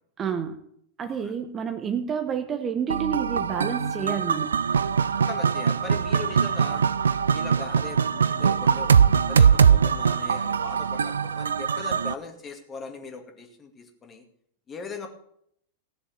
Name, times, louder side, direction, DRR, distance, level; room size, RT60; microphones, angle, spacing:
voice 1, 0.2-0.6 1.0-4.6, right 7 dB, 25° right, 9 dB, 1.1 m, -29 dB
sound 1, 2.9-12.1, right 7 dB, 70° right, 0.5 m, -22 dB
voice 2, 5.3-6.8 7.3-14.2 14.7-15.1, left 4 dB, 25° left, 5 dB, 2.2 m, -40 dB
16.5 x 7.1 x 6.7 m, 0.70 s
figure-of-eight pair, 90°, 0 cm